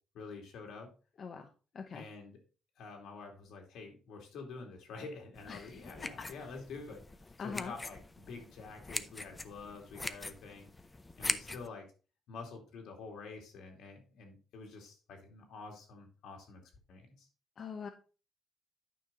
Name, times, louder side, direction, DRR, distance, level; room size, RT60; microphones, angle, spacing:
voice 1, 0.1-0.9 1.9-2.4 2.8-7.0 7.4-10.7 11.2-11.9 12.3-16.6 16.9-17.3, left 4 dB, 85° left, 2 dB, 2.6 m, -47 dB
voice 2, 1.2-1.5 1.7-2.1 5.5-5.8 7.4-7.7 17.6-17.9, left 5 dB, 50° left, 5 dB, 0.9 m, -42 dB
sound 1, 5.3-11.7, left 2 dB, 20° left, 0.6 m, -42 dB
9.4 x 5.5 x 3.9 m, 0.35 s
cardioid pair, 115°, 0 cm